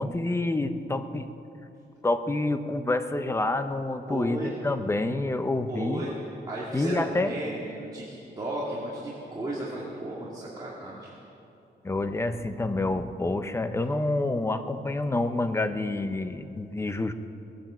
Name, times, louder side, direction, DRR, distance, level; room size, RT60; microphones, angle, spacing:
voice 1, 0.0-1.3 2.0-6.1 6.7-7.3 11.8-17.1, left 2 dB, 15° left, 9 dB, 0.7 m, -28 dB
voice 2, 4.1-4.5 5.7-6.2 6.5-11.1, right 1 dB, 20° right, -7 dB, 2.2 m, -34 dB
19.5 x 9.0 x 7.6 m, 2.8 s
wide cardioid pair, 155°, 18 cm